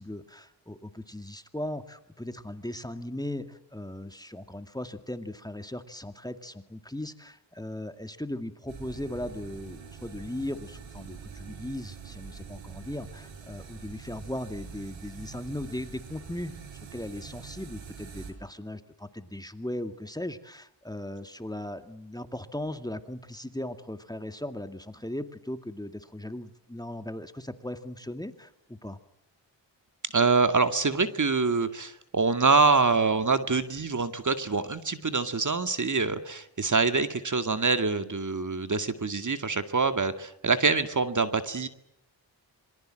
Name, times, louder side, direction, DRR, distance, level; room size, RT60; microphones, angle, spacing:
voice 1, 0.0-16.6 16.9-29.0, left 1 dB, 10° left, 8 dB, 2.2 m, -38 dB
sound 1, 8.7-18.3, right 6 dB, 85° right, 6.1 m, -45 dB
voice 2, 30.1-41.7, right 4 dB, 40° right, 9 dB, 2.2 m, -25 dB
26.5 x 23.0 x 7.7 m, 0.76 s
cardioid pair, 70°, 45 cm